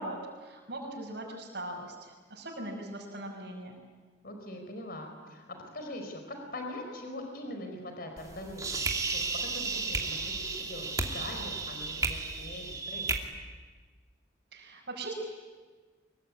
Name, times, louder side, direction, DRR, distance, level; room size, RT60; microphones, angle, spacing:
voice 1, 0.0-3.8 14.5-15.1, right 1 dB, 60° right, -4 dB, 5.4 m, -40 dB
voice 2, 4.2-5.4 5.7-8.8 9.1-10.9 11.1-13.3, left 1 dB, 50° left, 4 dB, 4.7 m, -42 dB
sound 1, 8.2-13.2, right 3 dB, 20° right, 2.7 m, -33 dB
25.0 x 23.0 x 9.7 m, 1.4 s
head